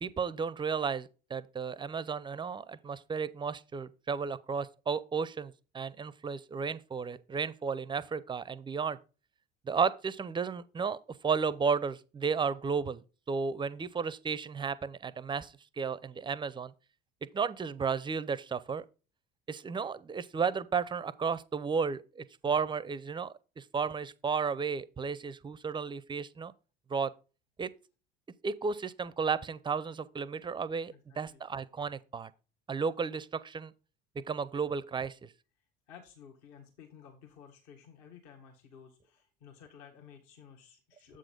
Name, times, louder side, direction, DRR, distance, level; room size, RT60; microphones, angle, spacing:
voice 1, 0.0-9.0 9.7-11.0 11.2-16.7 17.3-18.8 19.5-26.5 26.9-27.1 27.6-27.7 28.4-32.3 32.7-33.7 34.3-35.3, right 5 dB, 15° right, 0.4 m, -33 dB
voice 2, 30.9-31.5 35.9-41.2, left 7 dB, 60° left, 1.5 m, -54 dB
7.5 x 3.9 x 5.1 m
hypercardioid pair, 70°, 31 cm